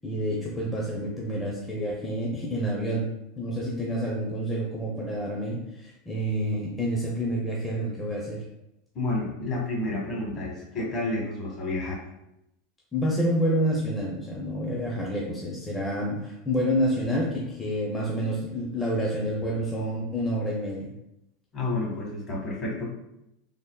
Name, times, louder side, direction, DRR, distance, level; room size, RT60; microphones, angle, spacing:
voice 1, 0.0-3.1 3.4-8.4 12.9-20.9, equal, 15° left, -4 dB, 0.5 m, -28 dB
voice 2, 8.9-12.0 21.5-22.8, left 2 dB, 40° left, -2 dB, 1.0 m, -30 dB
3.4 x 2.0 x 2.2 m, 0.85 s
hypercardioid pair, 100°, 0 cm